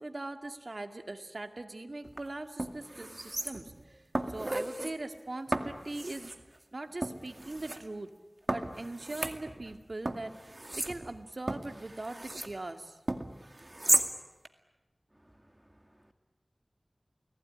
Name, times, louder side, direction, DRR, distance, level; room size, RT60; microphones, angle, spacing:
voice 1, 0.0-3.7 4.3-6.3 6.7-8.1 8.5-13.0, right 2 dB, 65° right, 6 dB, 2.2 m, -41 dB
sound 1, 2.0-2.2 2.6-3.8 4.1-4.9 5.5-6.4 7.0-7.8 8.5-9.8 10.1-12.5 13.1-14.1 14.4-14.5, right 1 dB, 45° right, 2.2 m, -34 dB
voice 2, 15.1-16.1, right 1 dB, 15° right, 6 dB, 2.0 m, -63 dB
29.0 x 19.5 x 9.9 m, 1.1 s
wide cardioid pair, 45°, 0 cm